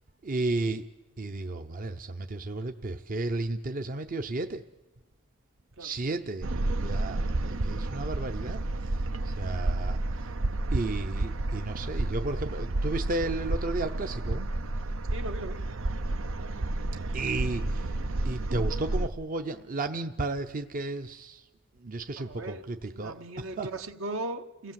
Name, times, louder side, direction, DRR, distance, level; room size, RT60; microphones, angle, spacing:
voice 1, 0.2-0.9 1.2-4.6 5.8-6.5 6.8-10.3 10.7-14.5 17.1-17.9 18.2-21.4 21.8-23.7, right 2 dB, 45° right, 0.7 m, -33 dB
sound 1, 6.4-19.1, right 2 dB, 90° right, 0.8 m, -31 dB
voice 2, 15.1-15.6 22.2-24.7, right 2 dB, 75° right, 1.2 m, -38 dB
29.5 x 17.5 x 7.5 m
head